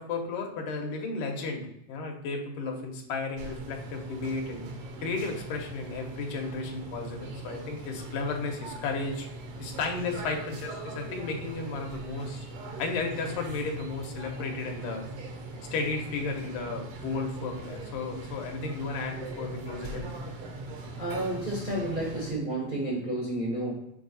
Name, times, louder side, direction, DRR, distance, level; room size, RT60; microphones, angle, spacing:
voice 1, 0.0-4.7 5.0-9.3 9.6-12.5 12.8-15.1 15.7-20.1, left 4 dB, 80° left, 2 dB, 2.6 m, -34 dB
sound 1, 3.4-22.3, right 2 dB, 70° right, 1.4 m, -40 dB
voice 2, 20.9-23.7, right 1 dB, 45° right, -4 dB, 0.6 m, -31 dB
7.1 x 3.9 x 4.0 m, 0.81 s
omnidirectional pair, 3.8 m